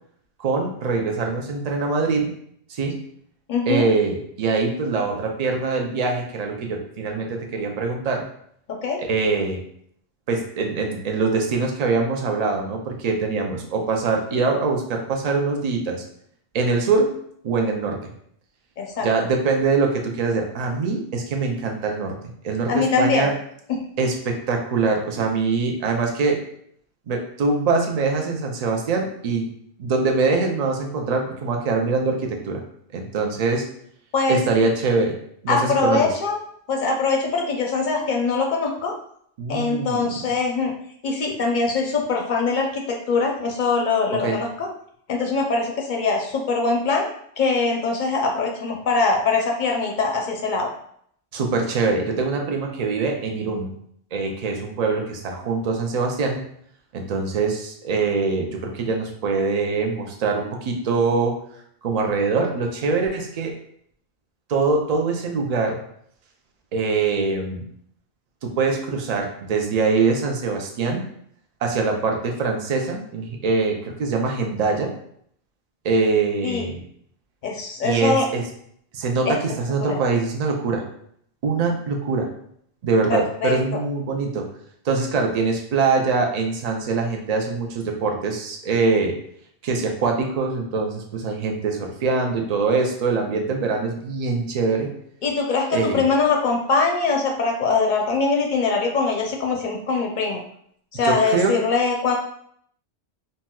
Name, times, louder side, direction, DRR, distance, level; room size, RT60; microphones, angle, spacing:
voice 1, 0.4-2.3 2.7-3.0 3.7-8.2 9.0-9.6 10.3-16.0 16.5-17.1 17.4-18.1 19.0-22.2 22.4-23.3 24.0-26.4 27.1-29.5 29.8-32.6 32.9-33.7 34.3-35.2 35.4-36.1 39.4-40.3 44.2-44.4 51.3-53.7 54.1-56.4 56.9-61.3 61.8-63.5 64.5-65.8 66.7-67.7 68.4-71.0 71.6-74.9 75.8-76.8 77.8-78.4 78.9-80.8 81.4-82.3 82.8-84.5 84.8-89.2 89.6-94.9 95.7-96.1 101.0-101.6, right 4 dB, 50° right, 2 dB, 0.5 m, -23 dB
voice 2, 3.5-3.9 8.8-9.0 18.8-19.1 22.7-23.3 23.7-23.8 34.1-34.4 35.5-36.4 36.7-38.9 39.5-40.7 41.0-44.7 45.1-47.1 47.4-50.7 76.4-76.7 77.4-78.2 79.3-79.4 79.8-80.0 83.1-83.6 95.2-100.4 100.9-102.1, left 4 dB, 60° left, 1 dB, 0.6 m, -22 dB
4.0 x 2.1 x 2.2 m, 0.67 s
omnidirectional pair, 1.1 m